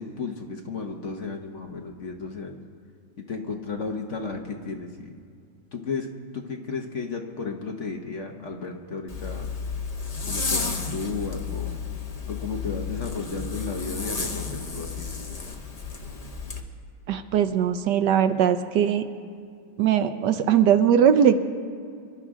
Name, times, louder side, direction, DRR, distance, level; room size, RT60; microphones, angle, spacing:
voice 1, 0.0-2.6 3.2-5.1 5.7-6.1 6.3-9.5 10.3-11.7 12.3-15.1, left 4 dB, 50° left, 2 dB, 1.1 m, -33 dB
Zipper (clothing), 9.1-16.6, left 5 dB, 30° left, 0.8 m, -32 dB
voice 2, 17.1-19.0 19.8-21.4, right 8 dB, 70° right, 9 dB, 1.2 m, -20 dB
27.0 x 11.5 x 3.7 m, 2.3 s
omnidirectional pair, 2.0 m